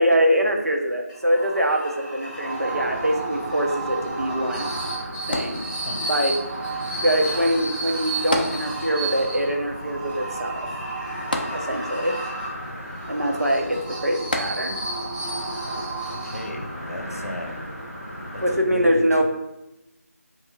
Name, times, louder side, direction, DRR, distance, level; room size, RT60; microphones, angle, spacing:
voice 1, 0.0-4.7 5.3-5.7 5.9-6.4 6.9-10.7 11.5-12.2 13.1-14.8 18.4-19.2, equal, 70° right, 2 dB, 0.7 m, -23 dB
sound 1, 1.1-16.8, right 2 dB, 30° right, 1.5 m, -32 dB
sound 2, 2.2-18.5, equal, 5° left, 1.3 m, -38 dB
sound 3, 5.3-6.2 8.3-9.2 9.5-9.6 11.3-12.2 14.3-15.0 15.7-15.8, left 1 dB, 35° left, 0.3 m, -29 dB
voice 2, 16.0-17.6 18.3-19.2, left 1 dB, 65° left, 3 dB, 0.7 m, -36 dB
3.3 x 2.7 x 4.2 m, 0.89 s
figure-of-eight pair, 165°, 9 cm